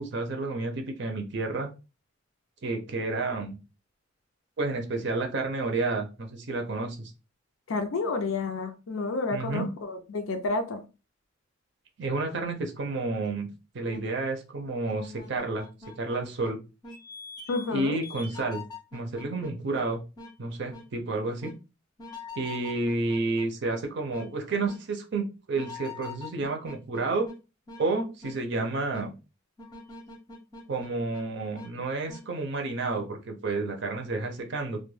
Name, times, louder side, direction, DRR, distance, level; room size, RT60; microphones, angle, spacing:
voice 1, 0.0-1.7 2.6-3.6 4.6-7.1 9.3-9.7 12.0-13.5 13.7-15.6 16.0-16.6 17.7-18.6 18.9-20.0 20.4-21.5 22.4-27.3 27.8-29.1 30.7-34.8, right 3 dB, 55° right, 4 dB, 0.5 m, -30 dB
voice 2, 7.7-10.8 17.5-18.0, left 3 dB, 70° left, 6 dB, 0.5 m, -30 dB
sound 1, 13.2-13.4 13.9-14.0 14.9-16.5 16.8-17.7 18.0-19.9 20.2-20.3 20.7-20.9 21.4-21.5 22.0-23.8 24.1-24.3 24.7-24.8 25.5-27.4 27.7-27.8 28.2-28.4 28.9-29.0 29.6-31.2 31.5-31.7 32.1-32.2, left 3 dB, 20° left, 0.5 m, -44 dB
2.2 x 2.2 x 3.1 m, 0.29 s
head